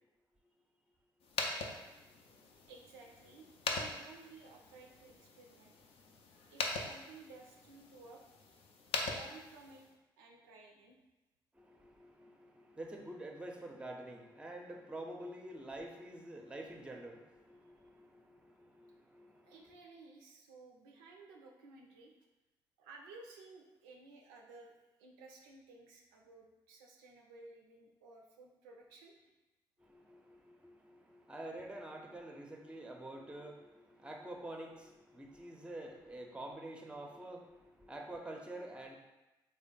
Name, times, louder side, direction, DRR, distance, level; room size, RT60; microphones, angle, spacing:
sound 1, 1.2-9.9, left 3 dB, 60° left, 0.4 m, -42 dB
voice 1, 2.7-5.8 6.5-8.2 9.1-9.8 10.2-11.0 19.5-22.1 22.8-29.2, right 3 dB, 85° right, 1 dB, 0.4 m, -56 dB
voice 2, 11.6-19.5 29.9-38.9, right 1 dB, 10° right, 2 dB, 0.6 m, -48 dB
3.2 x 2.2 x 3.7 m, 1.0 s
hypercardioid pair, 40°, 11 cm